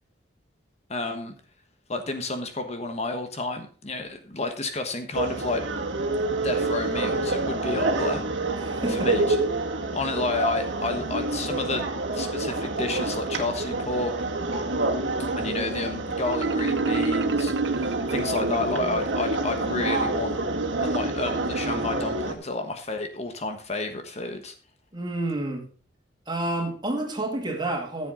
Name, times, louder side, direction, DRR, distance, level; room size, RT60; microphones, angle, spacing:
voice 1, 0.9-1.3 1.9-5.6 6.4-8.2 8.9-9.4 9.9-11.8 12.1-14.1 15.4-20.4 20.8-24.5, left 2 dB, 35° left, 1.2 m, -30 dB
sound 1, 5.1-22.3, right 2 dB, 90° right, 2.0 m, -28 dB
voice 2, 8.6-9.1 24.9-25.6 26.3-28.1, right 2 dB, 25° right, 2.4 m, -29 dB
Marimba xylophone, 16.3-19.0, right 4 dB, 65° right, 0.6 m, -28 dB
14.0 x 7.5 x 3.8 m
head